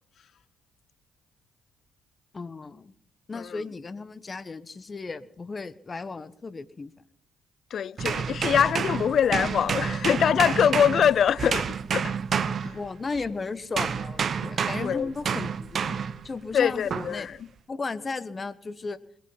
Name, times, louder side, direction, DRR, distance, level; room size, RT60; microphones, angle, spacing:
voice 1, 2.3-2.9 3.3-6.9 12.6-17.3 17.7-19.0, left 4 dB, 35° left, 1.2 m, -35 dB
voice 2, 3.3-3.6 7.7-12.1 12.6-12.7 14.8-15.1 16.5-17.4, left 8 dB, 60° left, 0.5 m, -24 dB
sound 1, 8.0-13.3 13.8-16.3 16.9-17.2, right 6 dB, 55° right, 0.9 m, -29 dB
22.0 x 9.2 x 5.8 m
hypercardioid pair, 50°, 0 cm